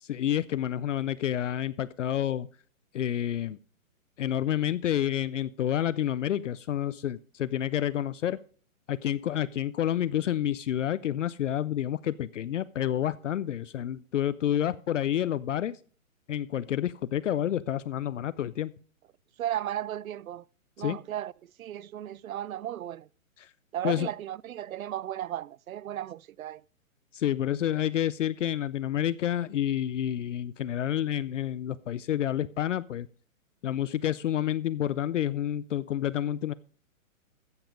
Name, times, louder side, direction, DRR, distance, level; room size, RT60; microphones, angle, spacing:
voice 1, 0.0-2.5 2.9-3.6 4.2-8.4 8.9-15.8 16.3-18.7 20.8-21.0 23.4-23.5 23.8-24.1 27.1-33.1 33.6-36.5, left 11 dB, 60° left, 0.5 m, -29 dB
voice 2, 19.4-20.4 20.8-23.1 23.7-26.6, right 12 dB, 80° right, 0.6 m, -35 dB
14.0 x 7.2 x 5.1 m
hypercardioid pair, 170°, 41 cm